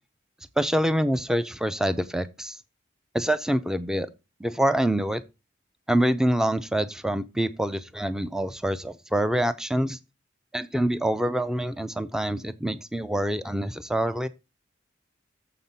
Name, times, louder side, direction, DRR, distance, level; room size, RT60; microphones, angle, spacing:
voice 1, 0.6-2.6 3.1-4.1 4.4-5.2 5.9-10.0 10.5-14.3, right 1 dB, 5° right, 0.4 m, -26 dB
7.2 x 5.8 x 5.4 m
head